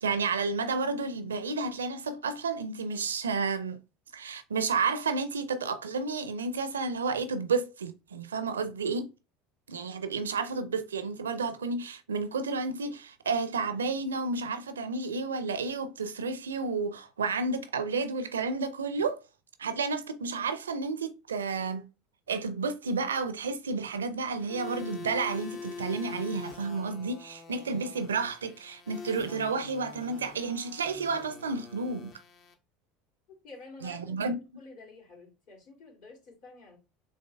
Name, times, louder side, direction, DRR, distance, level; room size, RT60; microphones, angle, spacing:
voice 1, 0.0-3.8 4.1-9.1 9.7-19.2 19.6-21.8 22.3-32.1 33.8-34.4, right 4 dB, 80° right, 0.4 m, -31 dB
sound 1, 24.4-32.5, left 5 dB, 45° left, 0.8 m, -44 dB
voice 2, 33.4-36.8, left 3 dB, 60° left, 2.6 m, -50 dB
6.9 x 2.6 x 2.2 m
figure-of-eight pair, 70°, 0 cm